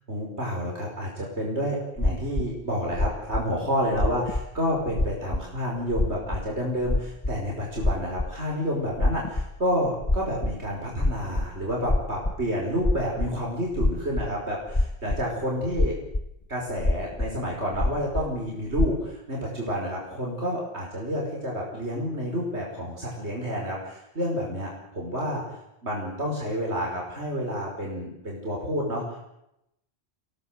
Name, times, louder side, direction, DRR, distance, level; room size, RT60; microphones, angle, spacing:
voice 1, 0.1-16.0 16.5-29.3, equal, 70° right, -2 dB, 5.5 m, -29 dB
sound 1, 2.0-2.5 2.9-3.4 3.9-4.5 4.8-5.4 5.7-8.4 8.9-9.6 9.8-13.5 13.7-14.3 14.7-15.4 15.7-16.3 16.8-17.3 17.7-18.3 18.7-18.9, left 2 dB, 25° left, 1.5 m, -26 dB
27.5 x 17.5 x 8.0 m, 0.83 s
omnidirectional pair, 1.2 m